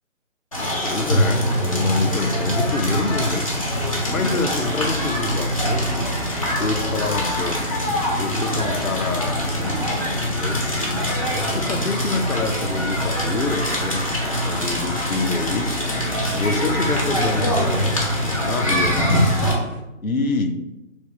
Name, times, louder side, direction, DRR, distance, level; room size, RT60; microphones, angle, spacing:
Crackle, 0.5-19.5, equal, 25° left, 0.7 m, -23 dB
voice 1, 0.8-3.5 4.1-6.1 6.6-7.7 8.1-11.1 11.5-15.8 16.4-19.3 20.0-20.6, left 3 dB, 80° left, 6 dB, 0.8 m, -27 dB
sound 1, 2.9-13.7 14.0-14.1, right 2 dB, 15° right, 0.9 m, -41 dB
sound 2, 8.2-19.8, equal, 65° right, 0.8 m, -37 dB
3.4 x 3.1 x 4.2 m, 0.93 s
figure-of-eight pair, 150°, 41 cm